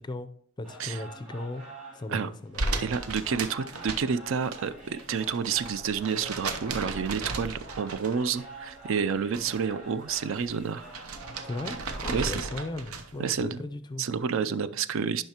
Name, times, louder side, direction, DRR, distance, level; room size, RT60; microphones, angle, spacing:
voice 1, 0.6-1.6 1.9-2.9 11.4-11.8 12.0-14.0, left 2 dB, 20° left, 11 dB, 0.4 m, -36 dB
sound 1, 0.6-12.3, right 1 dB, 35° right, 2.8 m, -47 dB
sound 2, 2.5-4.6 4.9-8.4 8.7-9.7 10.0-13.2, right 3 dB, 80° right, 0.8 m, -36 dB
voice 2, 2.8-10.9 12.1-12.5 13.2-13.6 14.0-15.2, right 6 dB, 60° right, 14 dB, 0.4 m, -29 dB
10.5 x 5.6 x 2.9 m, 0.64 s
head